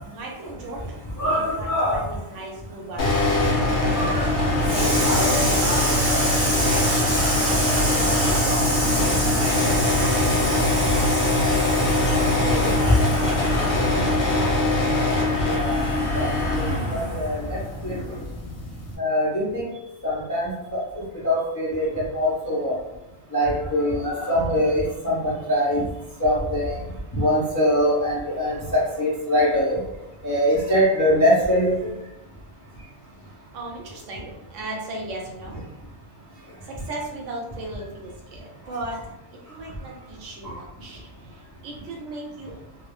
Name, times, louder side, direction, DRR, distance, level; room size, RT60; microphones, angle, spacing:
voice 1, 0.1-3.1 4.7-6.0 6.5-7.0 8.2-10.3 10.8-11.3 12.0-13.6 33.5-35.6 36.7-39.0 39.5-41.0 41.6-42.5, right 2 dB, 70° right, 0 dB, 0.9 m, -36 dB
voice 2, 1.2-2.0 3.9-4.2 4.7-12.0 12.3-13.0 15.5-18.0 19.0-19.7 20.0-20.8 21.2-22.8 23.3-25.8 26.2-26.8 27.1-29.8 30.2-31.8 40.4-40.5, equal, 30° left, -7 dB, 0.3 m, -24 dB
sound 1, 3.0-19.0, left 2 dB, 50° left, 0.7 m, -22 dB
2.3 x 2.0 x 3.1 m, 0.91 s
omnidirectional pair, 1.4 m